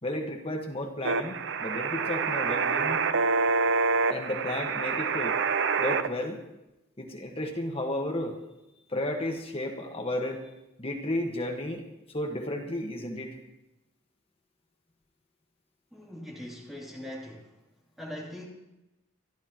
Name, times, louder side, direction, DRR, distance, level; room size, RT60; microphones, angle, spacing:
voice 1, 0.0-3.0 4.1-5.4 5.8-6.4 7.0-8.4 8.9-10.4 10.8-11.8 12.1-13.4, left 1 dB, 30° left, 2 dB, 1.4 m, -33 dB
sound 1, 1.0-6.1, right 4 dB, 60° right, 0.7 m, -27 dB
voice 2, 15.9-17.6 18.0-18.5, left 1 dB, ahead, -4 dB, 2.9 m, -41 dB
26.0 x 12.0 x 3.0 m, 0.96 s
head